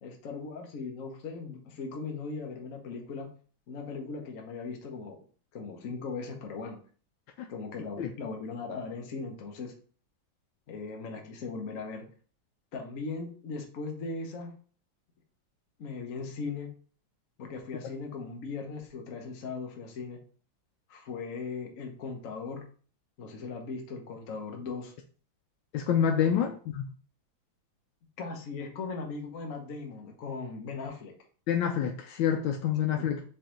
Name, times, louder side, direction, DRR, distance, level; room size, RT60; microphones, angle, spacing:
voice 1, 0.0-3.3 3.7-5.2 5.5-6.8 7.5-9.7 10.7-12.0 12.7-14.5 15.8-16.7 17.4-20.2 20.9-22.6 23.2-24.9 26.3-26.5 28.2-31.1 33.0-33.1, left 4 dB, 55° left, 2 dB, 1.1 m, -38 dB
voice 2, 25.7-26.8 31.5-33.2, left 8 dB, 80° left, 5 dB, 1.3 m, -27 dB
4.4 x 3.2 x 3.7 m, 0.41 s
omnidirectional pair, 2.1 m